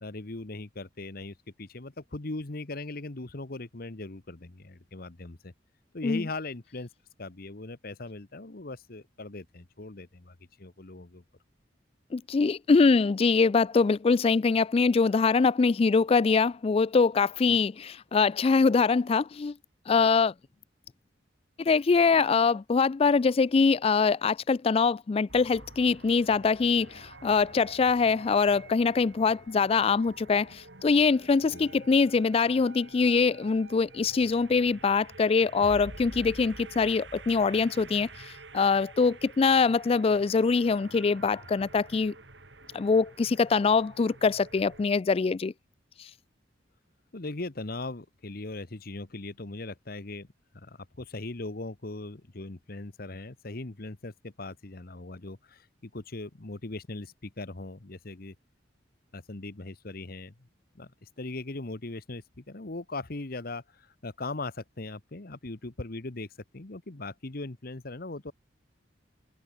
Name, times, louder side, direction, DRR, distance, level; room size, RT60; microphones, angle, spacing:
voice 1, 0.0-5.5 5.9-6.9 7.2-11.2 17.5-17.6 31.5-31.7 47.1-50.3 50.5-58.3 59.1-60.3 60.7-66.3 66.5-68.3, left 2 dB, 50° left, 1.3 m, -39 dB
voice 2, 12.1-19.5 19.9-20.3 21.6-42.1 42.7-45.5, left 4 dB, 30° left, 0.3 m, -23 dB
sound 1, 25.3-44.9, right 2 dB, 70° right, 6.4 m, -48 dB
head